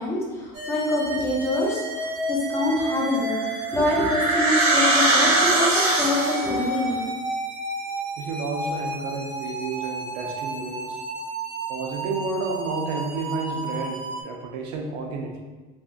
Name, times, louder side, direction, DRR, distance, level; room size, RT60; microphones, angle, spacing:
voice 1, 0.0-3.4 3.7-7.0, left 2 dB, 15° left, -3 dB, 0.5 m, -25 dB
sound 1, 0.5-14.2, right 2 dB, 50° right, 0.9 m, -31 dB
sound 2, 3.2-6.6, right 2 dB, 30° right, 0.6 m, -21 dB
voice 2, 8.2-11.0 11.7-15.4, right 3 dB, 90° right, 2 dB, 0.6 m, -31 dB
3.3 x 2.6 x 2.4 m, 1.3 s
cardioid pair, 165°, 20 cm